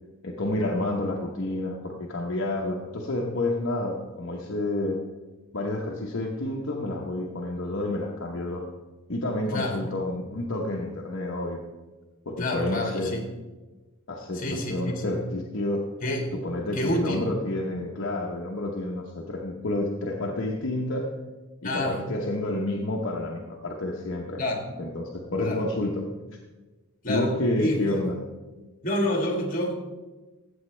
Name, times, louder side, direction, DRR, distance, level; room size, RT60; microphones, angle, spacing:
voice 1, 0.2-5.0 5.5-8.7 9.1-11.6 12.3-13.2 14.1-15.9 16.3-21.1 21.6-24.4 24.8-26.0 27.1-28.2, left 1 dB, 60° left, -1 dB, 1.0 m, -29 dB
voice 2, 12.4-13.2 14.3-15.2 16.0-16.3 16.7-17.3 21.6-22.0 24.4-24.6 25.4-25.6 27.0-27.3 27.6-27.9 28.8-29.7, left 1 dB, 40° left, 2 dB, 1.9 m, -28 dB
14.5 x 7.9 x 3.3 m, 1.2 s
head